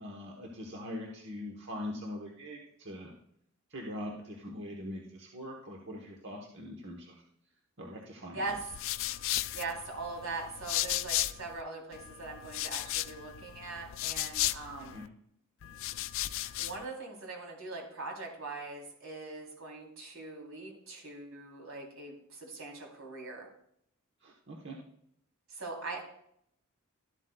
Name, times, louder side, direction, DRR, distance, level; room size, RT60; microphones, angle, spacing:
voice 1, 0.0-3.1 3.7-7.2 7.8-8.4 14.9-15.0 24.2-24.8, left 1 dB, 55° right, 0 dB, 1.1 m, -42 dB
sound 1, 8.5-11.6 11.9-15.1 15.6-16.8, left 14 dB, 65° left, 0.4 m, -35 dB
voice 2, 9.5-15.0 16.2-23.5 25.5-26.0, right 3 dB, 85° right, 0 dB, 3.5 m, -41 dB
12.5 x 11.5 x 2.3 m, 0.70 s
head